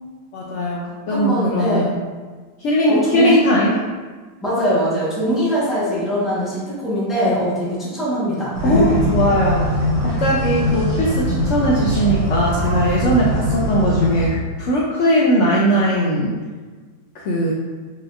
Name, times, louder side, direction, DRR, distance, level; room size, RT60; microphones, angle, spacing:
voice 1, 0.3-0.8 1.1-1.9 2.6-3.7 8.6-9.6 10.2-16.3 17.1-17.5, equal, 85° left, -5 dB, 0.6 m, -19 dB
voice 2, 1.1-1.9 2.9-3.4 4.4-9.0, equal, ahead, -9 dB, 0.7 m, -21 dB
sound 1, 8.5-14.3, equal, 90° right, 2.3 m, -21 dB
4.5 x 3.0 x 2.4 m, 1.4 s
omnidirectional pair, 1.8 m